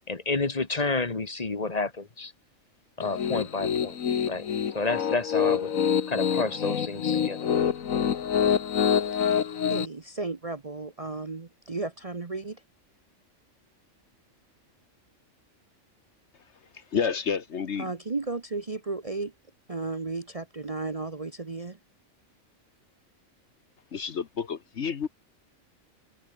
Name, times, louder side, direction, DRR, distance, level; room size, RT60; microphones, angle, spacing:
voice 1, 0.1-2.3 3.0-4.0 4.3-4.5 4.7-5.7 6.1-7.5, left 3 dB, 30° left, 1.6 m, -30 dB
Piano, 3.0-9.9, left 8 dB, 75° left, 1.6 m, -26 dB
voice 2, 9.7-12.6 17.8-19.3 19.7-21.8, right 3 dB, 30° right, 0.9 m, -34 dB
voice 3, 16.3-17.9 23.9-25.1, left 6 dB, 55° left, 1.3 m, -30 dB
omnidirectional pair, 1.4 m